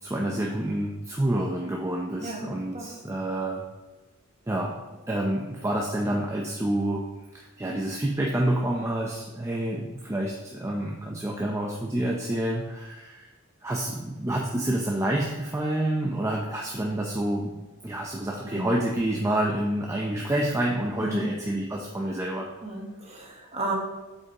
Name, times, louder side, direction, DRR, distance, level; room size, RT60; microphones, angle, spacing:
voice 1, 0.0-3.6 4.5-4.8 5.1-7.1 7.3-13.3 13.6-22.5, right 1 dB, 15° right, -1 dB, 0.5 m, -28 dB
voice 2, 2.2-2.9 18.4-18.7 21.0-21.3 22.6-23.7, right 2 dB, 30° right, -1 dB, 1.3 m, -33 dB
8.0 x 5.3 x 2.9 m, 1.2 s
head